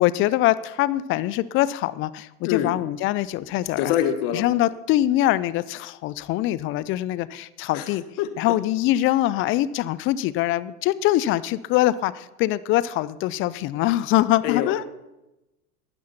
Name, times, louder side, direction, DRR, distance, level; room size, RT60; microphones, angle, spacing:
voice 1, 0.0-3.9 4.3-8.0 8.4-14.8, left 15 dB, 30° left, 18 dB, 0.3 m, -23 dB
voice 2, 3.8-4.4 7.7-7.9 8.2-8.3 14.4-14.9, left 10 dB, 55° left, 10 dB, 1.5 m, -24 dB
12.0 x 9.4 x 5.8 m, 0.98 s
hypercardioid pair, 90°, 47 cm